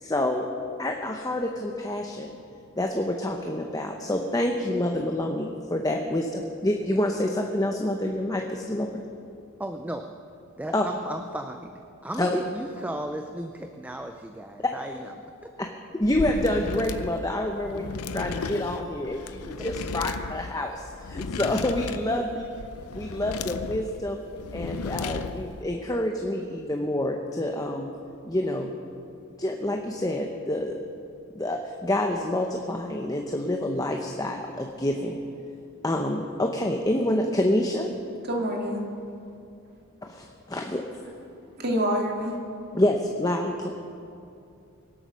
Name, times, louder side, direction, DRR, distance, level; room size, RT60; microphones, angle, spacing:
voice 1, 0.0-0.5 0.8-2.3 2.8-9.0 10.7-10.8 12.2-12.3 15.9-22.4 22.9-24.2 24.5-27.9 28.2-28.7 29.4-30.8 31.3-35.1 35.8-37.9 40.0-40.8 42.7-43.7, left 1 dB, 15° left, 2 dB, 0.8 m, -27 dB
voice 2, 9.6-10.1 10.6-11.7 12.0-15.1 15.4-15.5 19.6-19.7 22.1-22.3, right 1 dB, 5° right, 5 dB, 0.5 m, -35 dB
sound 1, 16.0-25.6, left 4 dB, 90° left, 0.6 m, -35 dB
voice 3, 38.2-38.9 41.6-42.4, equal, 45° right, 0 dB, 2.5 m, -27 dB
24.0 x 8.7 x 6.3 m, 2.6 s
head